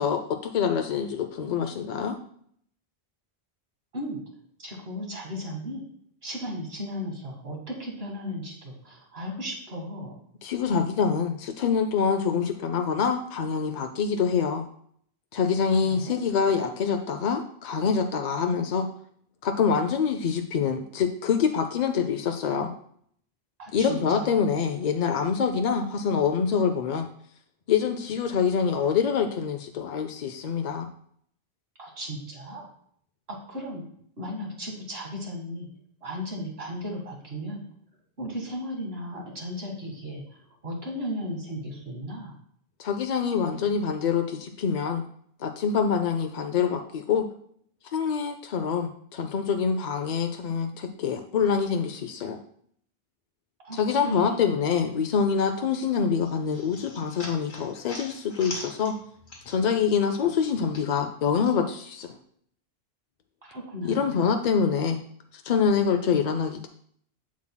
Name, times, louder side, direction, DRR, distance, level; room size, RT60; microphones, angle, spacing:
voice 1, 0.0-2.2 10.4-14.7 15.3-18.9 19.4-22.7 23.7-27.1 27.7-30.9 42.8-45.0 45.4-47.2 47.9-52.4 53.7-58.9 59.5-62.2 63.8-65.0 65.3-66.7, left 6 dB, 55° left, 6 dB, 0.5 m, -25 dB
voice 2, 4.6-5.8 6.2-10.2 15.8-16.1 23.6-24.4 31.8-32.7 33.5-33.8 34.2-35.7 36.0-37.6 38.2-42.3 53.6-54.6 63.4-64.2, equal, 75° right, -1 dB, 2.1 m, -36 dB
sound 1, 56.2-59.9 60.1-61.5, left 1 dB, 85° left, 2.0 m, -42 dB
7.4 x 7.2 x 2.2 m, 0.64 s
omnidirectional pair, 1.0 m